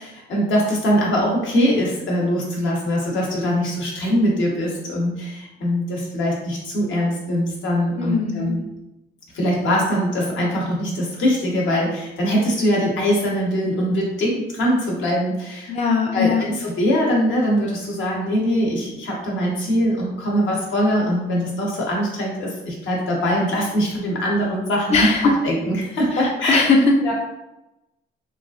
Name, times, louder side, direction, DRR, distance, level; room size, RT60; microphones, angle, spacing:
voice 1, 0.0-8.6 9.3-15.7 16.1-25.1 25.4-26.6 27.0-27.1, equal, 70° left, -3 dB, 1.0 m, -22 dB
voice 2, 8.0-8.6 15.7-16.4 24.9-25.3 26.1-27.1, left 4 dB, 35° left, 1 dB, 0.4 m, -19 dB
3.0 x 2.5 x 2.4 m, 0.94 s
cardioid pair, 90°, 20 cm